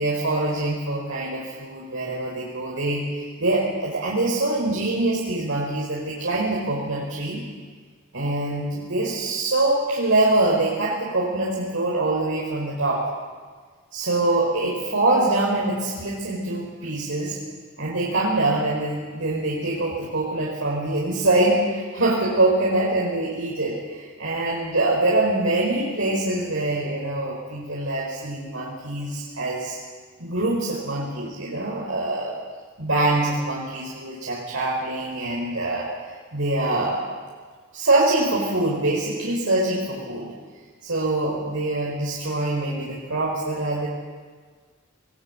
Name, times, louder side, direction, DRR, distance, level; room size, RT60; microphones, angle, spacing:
voice 1, 0.0-7.4 8.1-13.0 13.9-17.4 17.8-29.7 30.2-32.4 32.8-35.9 36.3-37.0 37.7-40.3 40.8-43.9, right 2 dB, 70° right, -4 dB, 5.0 m, -24 dB
21.5 x 21.0 x 9.0 m, 1.5 s
head